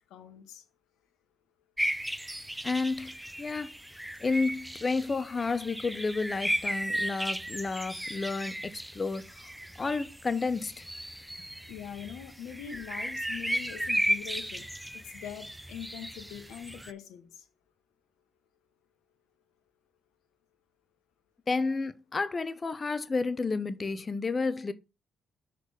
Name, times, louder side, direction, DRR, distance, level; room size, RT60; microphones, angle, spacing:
voice 1, 0.1-0.6 11.7-17.5, left 9 dB, 80° left, 1.2 m, -43 dB
sound 1, 1.8-16.9, equal, 5° right, 0.6 m, -35 dB
voice 2, 2.6-3.7 4.2-9.5 9.8-10.8 21.5-24.7, left 4 dB, 35° left, 0.7 m, -31 dB
6.3 x 4.1 x 4.9 m
supercardioid pair, 55°, 0 cm